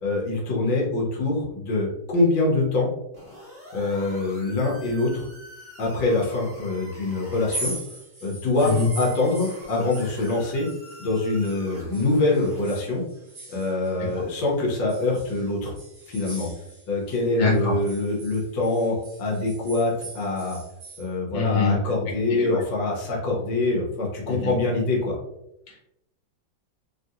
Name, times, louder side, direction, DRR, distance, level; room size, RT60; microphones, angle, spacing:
voice 1, 0.0-2.9 3.7-5.3 5.8-7.7 8.2-10.7 11.0-13.0 13.5-15.7 16.1-16.5 16.9-20.6 21.0-25.2, left 2 dB, 90° left, -3 dB, 1.5 m, -24 dB
sound 1, 3.1-7.8 8.5-12.7, equal, 10° right, 1.0 m, -46 dB
sound 2, 7.3-11.6 11.9-14.4 14.9-17.2 17.5-21.0, right 2 dB, 30° right, 0.5 m, -40 dB
voice 2, 17.4-17.7 21.3-21.7 22.3-22.6 24.3-24.6 25.7-25.8, left 4 dB, 65° left, -4 dB, 1.6 m, -24 dB
3.4 x 2.7 x 2.3 m, 0.83 s
omnidirectional pair, 2.0 m